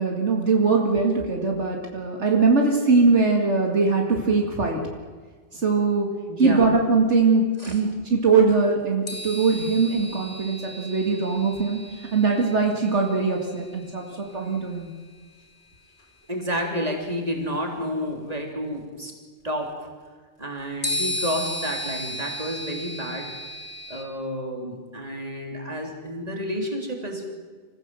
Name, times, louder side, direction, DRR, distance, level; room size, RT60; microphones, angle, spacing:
voice 1, 0.0-4.8 5.5-6.1 6.4-11.8 12.1-14.9, right 4 dB, 70° right, 1 dB, 2.5 m, -21 dB
voice 2, 6.3-6.7 7.6-7.8 16.3-19.1 19.4-19.9 20.4-23.3 23.9-27.2, equal, 30° right, 1 dB, 3.6 m, -30 dB
sound 1, 9.1-14.7 16.0-16.1 20.8-24.0, left 1 dB, 65° left, 3.4 m, -34 dB
26.5 x 15.5 x 7.7 m, 1.5 s
omnidirectional pair, 1.2 m